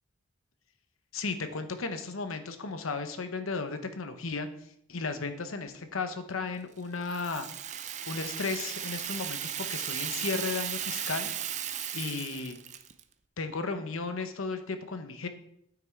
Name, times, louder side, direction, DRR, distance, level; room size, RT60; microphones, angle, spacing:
voice 1, 1.1-7.5 8.1-11.3 11.9-12.6 13.4-15.3, left 4 dB, 80° left, 8 dB, 0.9 m, -35 dB
Rattle (instrument), 7.1-13.0, right 10 dB, 35° right, 0.4 m, -36 dB
9.1 x 5.9 x 4.6 m, 0.74 s
head